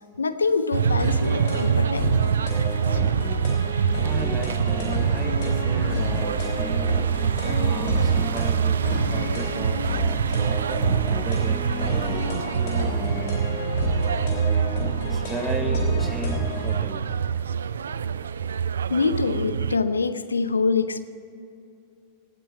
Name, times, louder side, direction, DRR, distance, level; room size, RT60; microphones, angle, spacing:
voice 1, 0.2-2.3 18.9-21.0, left 4 dB, 75° left, 12 dB, 0.7 m, -25 dB
sound 1, 0.7-19.8, right 7 dB, 70° right, 0.4 m, -25 dB
sound 2, 1.0-16.7, left 3 dB, 50° left, 4.1 m, -31 dB
voice 2, 4.0-7.0 7.6-12.2 12.8-13.5 15.1-17.1, right 1 dB, 5° right, 3 dB, 0.9 m, -36 dB
18.0 x 6.2 x 9.0 m, 2.6 s
figure-of-eight pair, 90°, 0 cm